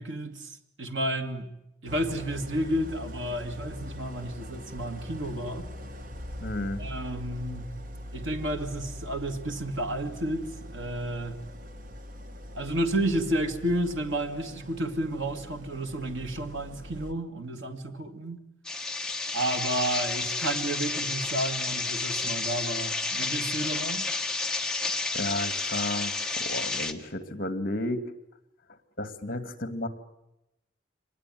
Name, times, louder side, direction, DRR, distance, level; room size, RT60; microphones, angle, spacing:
voice 1, 0.0-1.5 1.8-5.7 6.8-7.7 8.1-11.4 12.5-18.4 19.3-24.0, right 1 dB, 80° right, 2.2 m, -31 dB
Idling, 1.9-17.1, equal, 45° right, 1.3 m, -42 dB
voice 2, 6.4-6.8 24.9-28.0 29.0-29.9, left 1 dB, 50° left, 2.2 m, -33 dB
sound 1, 18.6-26.9, left 3 dB, 5° left, 1.1 m, -31 dB
24.5 x 19.5 x 9.2 m
head